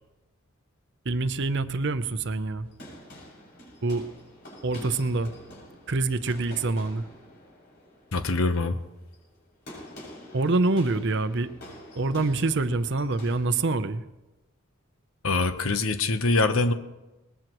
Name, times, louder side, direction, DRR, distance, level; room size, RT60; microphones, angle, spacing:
voice 1, 1.0-2.7 3.8-4.0 4.6-5.3 5.9-7.1 10.3-11.5 12.0-14.0, right 3 dB, 55° right, 12 dB, 0.7 m, -26 dB
sound 1, 2.5-13.4, left 1 dB, 55° left, 6.8 m, -47 dB
voice 2, 8.1-8.8 15.2-16.7, left 3 dB, 75° left, 9 dB, 1.0 m, -24 dB
21.0 x 20.0 x 3.1 m, 1.0 s
head